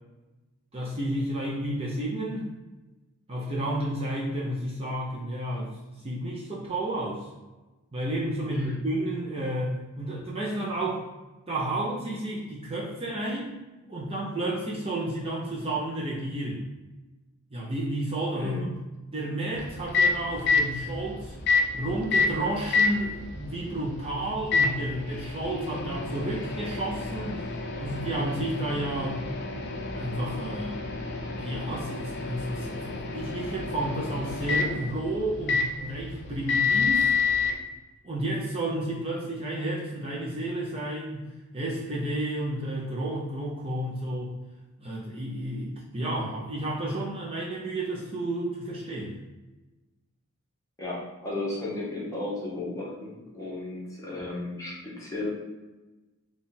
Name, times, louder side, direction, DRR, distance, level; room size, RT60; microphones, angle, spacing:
voice 1, 0.7-2.5 3.3-7.3 7.9-11.0 11.5-13.6 13.9-16.7 17.5-18.7 19.1-21.4 21.7-29.2 29.9-30.9 31.4-37.1 38.0-41.2 41.5-44.3 44.8-49.2, right 1 dB, 25° right, -5 dB, 0.5 m, -31 dB
Microwave oven, 19.5-37.5, left 4 dB, 50° left, 0.5 m, -29 dB
voice 2, 50.8-55.3, left 2 dB, 15° left, -6 dB, 0.9 m, -34 dB
3.6 x 2.4 x 4.1 m, 1.1 s
head